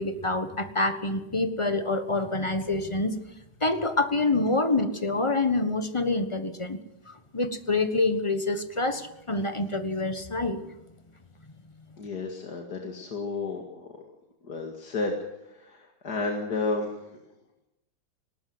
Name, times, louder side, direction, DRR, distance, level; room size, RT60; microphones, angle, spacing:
voice 1, 0.0-3.2 3.6-6.8 7.1-10.6, left 2 dB, 20° left, 9 dB, 1.0 m, -26 dB
voice 2, 12.0-13.9 14.4-17.2, left 3 dB, 55° left, 2 dB, 2.5 m, -32 dB
19.5 x 18.5 x 7.9 m, 0.91 s
omnidirectional pair, 2.2 m